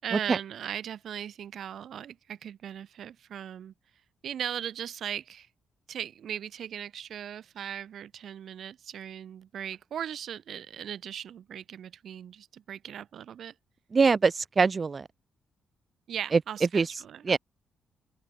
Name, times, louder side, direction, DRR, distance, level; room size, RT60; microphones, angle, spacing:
voice 1, 0.0-3.7 4.2-5.5 5.9-13.5 16.1-17.4, right 9 dB, 65° right, 5.3 m, -38 dB
voice 2, 13.9-15.1 16.3-16.4 16.7-16.9 17.2-17.4, right 4 dB, 30° right, 0.3 m, -23 dB
open air
cardioid pair, 135°, 0 cm